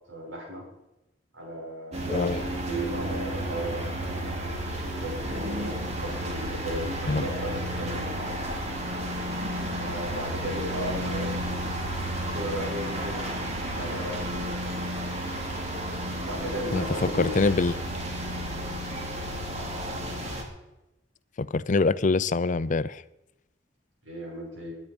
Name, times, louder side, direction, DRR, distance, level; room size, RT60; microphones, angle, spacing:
voice 1, 0.1-0.7 1.3-2.3 2.6-4.6 5.0-8.1 9.8-11.3 12.3-14.8 16.3-17.4 24.0-24.7, equal, 80° right, -1 dB, 5.9 m, -36 dB
sound 1, 1.9-20.4, right 1 dB, 35° right, 2.8 m, -32 dB
voice 2, 2.1-2.4 7.1-7.2 16.7-17.7 21.4-23.0, left 3 dB, 40° left, 17 dB, 0.5 m, -24 dB
20.5 x 9.4 x 5.2 m, 0.93 s
head